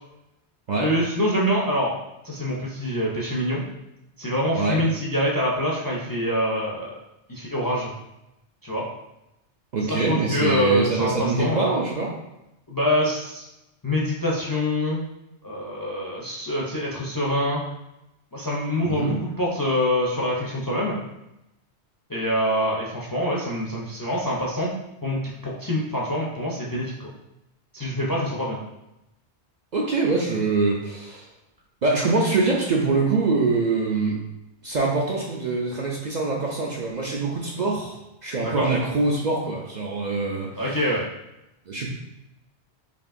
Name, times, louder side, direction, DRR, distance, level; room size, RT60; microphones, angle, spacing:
voice 1, 0.8-1.9 2.2-3.6 4.2-6.9 7.3-7.9 8.6-8.8 9.8-11.7 12.7-13.4 13.8-15.0 15.4-17.6 18.3-20.9 22.1-24.7 25.0-27.1 27.7-28.6 38.4-38.7 40.6-41.0, equal, 30° left, -4 dB, 0.4 m, -25 dB
voice 2, 9.7-12.1 18.8-19.2 29.7-31.2 31.8-34.2 34.6-40.8 41.7-41.9, right 3 dB, 55° right, -2 dB, 0.5 m, -24 dB
5.1 x 2.8 x 2.5 m, 0.89 s
omnidirectional pair, 1.1 m